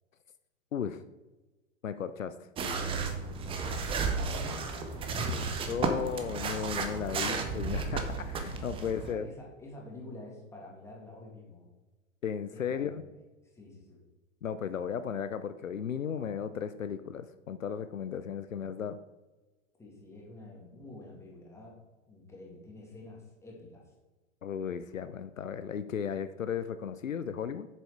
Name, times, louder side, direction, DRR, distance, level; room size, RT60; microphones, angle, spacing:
voice 1, 0.7-1.0 1.8-2.3 5.7-9.3 12.2-13.0 14.4-19.0 24.4-27.7, left 7 dB, 75° left, 11 dB, 0.6 m, -35 dB
sound 1, 2.6-9.1, right 4 dB, 15° right, 0.7 m, -33 dB
voice 2, 3.4-6.0 8.7-11.7 12.5-13.0 13.4-14.0 19.8-21.8 22.1-23.9, left 2 dB, 5° left, -2 dB, 2.1 m, -48 dB
7.5 x 6.9 x 4.6 m, 1.2 s
figure-of-eight pair, 105°, 40 cm